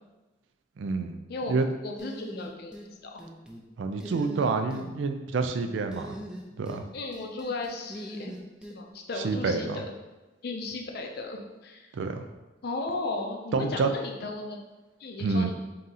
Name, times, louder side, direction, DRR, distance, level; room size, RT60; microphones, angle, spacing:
voice 1, 0.8-1.2 1.5-1.7 3.8-6.2 6.6-6.9 9.2-9.8 11.9-12.2 13.5-13.9 15.2-15.5, right 4 dB, 75° right, 7 dB, 0.4 m, -28 dB
voice 2, 1.8-2.8 3.0-3.2 6.9-8.3 8.7-9.8 10.4-11.9 12.6-14.6 15.0-15.5, left 3 dB, 55° left, 3 dB, 0.5 m, -35 dB
sound 1, 2.0-2.9 3.2-3.6 4.0-4.9 5.9-6.8 7.1-8.8, equal, 5° right, 0.4 m, -42 dB
3.6 x 2.8 x 4.0 m, 1.1 s
head